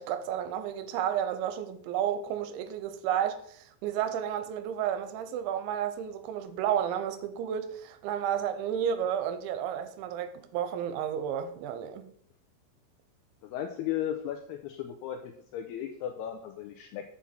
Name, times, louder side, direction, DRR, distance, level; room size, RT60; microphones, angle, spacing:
voice 1, 0.0-12.1, right 9 dB, 85° right, 3.1 m, -32 dB
voice 2, 13.4-17.0, left 10 dB, 85° left, 2.3 m, -35 dB
7.2 x 7.1 x 4.4 m
omnidirectional pair, 5.3 m